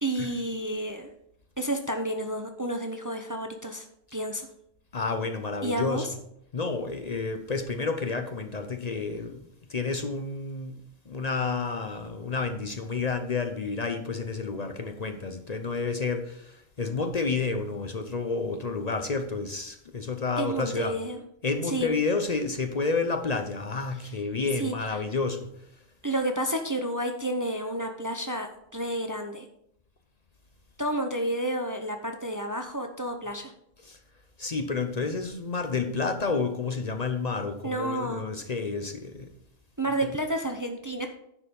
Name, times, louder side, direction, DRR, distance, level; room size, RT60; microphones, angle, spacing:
voice 1, 0.0-1.1 1.6-3.8 4.1-4.5 5.6-6.1 20.4-21.2 21.6-21.9 24.6-25.0 26.0-28.5 28.7-29.5 30.8-33.5 37.6-38.2 39.8-41.1, right 1 dB, 20° right, 5 dB, 0.6 m, -30 dB
voice 2, 4.9-6.1 6.5-9.4 9.7-10.8 11.1-21.0 21.4-25.5 33.8-34.0 34.4-39.3, left 4 dB, 45° left, 7 dB, 0.7 m, -30 dB
10.0 x 5.0 x 5.2 m, 0.75 s
omnidirectional pair, 1.1 m